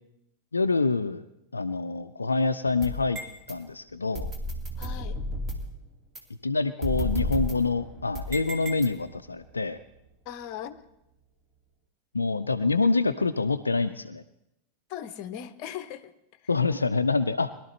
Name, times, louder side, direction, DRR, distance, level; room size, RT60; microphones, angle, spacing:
voice 1, 0.5-1.2 1.5-3.2 3.5-4.3 6.4-9.8 12.1-14.2 16.5-17.5, left 3 dB, 80° left, 9 dB, 0.4 m, -26 dB
sound 1, 2.8-3.5 4.1-5.7 6.1-6.2 6.8-9.3, equal, 25° right, 2.3 m, -33 dB
voice 2, 4.8-5.2 10.3-10.8 14.9-16.1, left 10 dB, 45° left, 12 dB, 0.8 m, -38 dB
22.0 x 12.0 x 3.2 m, 0.83 s
figure-of-eight pair, 90°, 0 cm